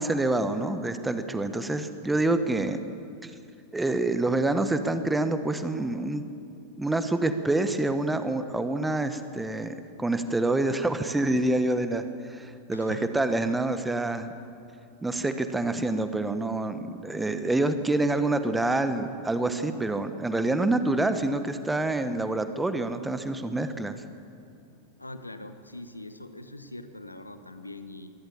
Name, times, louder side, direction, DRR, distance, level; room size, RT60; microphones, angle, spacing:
voice 1, 0.0-2.9 3.2-3.3 3.7-6.3 6.8-14.3 15.0-24.0, right 2 dB, 10° right, 10 dB, 1.3 m, -27 dB
voice 2, 12.7-13.1 25.0-28.1, left 2 dB, 85° left, 10 dB, 1.2 m, -42 dB
23.0 x 17.5 x 7.1 m, 2.6 s
figure-of-eight pair, 90°, 0 cm